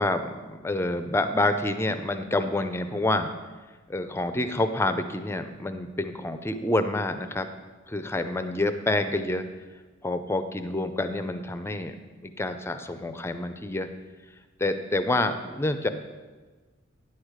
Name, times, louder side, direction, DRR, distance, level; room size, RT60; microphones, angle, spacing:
voice 1, 0.0-3.3 3.9-7.5 7.9-9.4 10.0-11.9 12.2-13.9 14.6-15.9, left 2 dB, 15° left, 9 dB, 0.5 m, -27 dB
9.7 x 6.4 x 5.0 m, 1.3 s
head